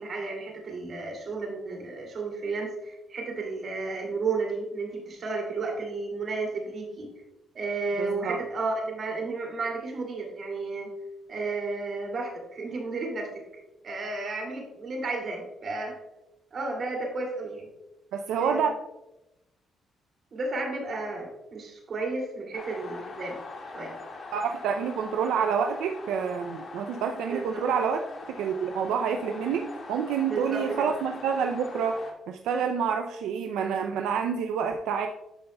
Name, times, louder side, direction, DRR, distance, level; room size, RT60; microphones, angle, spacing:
voice 1, 0.0-7.1 7.5-10.9 11.3-13.3 13.8-15.9 16.5-17.7 18.4-18.6 20.3-23.4 23.7-23.9 27.3-27.6 30.3-30.9, right 3 dB, 50° right, 1 dB, 2.5 m, -32 dB
voice 2, 8.0-8.4 18.1-18.7 24.3-28.0 28.3-32.0 32.3-35.1, right 7 dB, 85° right, 5 dB, 0.4 m, -28 dB
sound 1, 22.5-32.1, left 3 dB, 45° left, 1.8 m, -42 dB
12.0 x 5.5 x 2.2 m, 0.93 s
cardioid pair, 90°, 0 cm